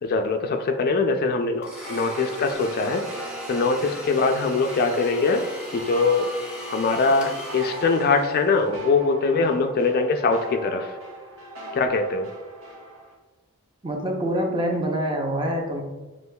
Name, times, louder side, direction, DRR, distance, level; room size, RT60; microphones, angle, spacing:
voice 1, 0.0-3.0 3.5-6.3 6.7-11.0 11.7-12.3, left 4 dB, 45° left, 5 dB, 0.3 m, -22 dB
Domestic sounds home sounds, 1.6-8.7, equal, 5° right, 0.9 m, -38 dB
sound 1, 1.8-13.1, right 1 dB, 65° right, 0.9 m, -40 dB
voice 2, 13.8-15.8, equal, 25° right, 1 dB, 0.6 m, -25 dB
6.2 x 3.0 x 2.2 m, 1.2 s
head